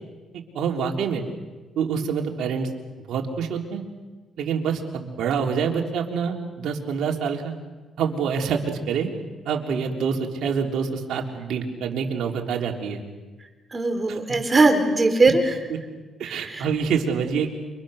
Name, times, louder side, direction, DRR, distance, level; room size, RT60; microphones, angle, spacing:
voice 1, 0.5-1.2 1.8-2.7 3.1-3.8 4.4-7.5 8.0-9.1 9.5-13.0 16.2-17.5, right 6 dB, 80° right, 1 dB, 3.6 m, -26 dB
voice 2, 13.7-15.6 16.2-16.7, right 3 dB, 30° right, 6 dB, 4.3 m, -20 dB
29.0 x 26.0 x 6.6 m, 1.3 s
cardioid pair, 70°, 0 cm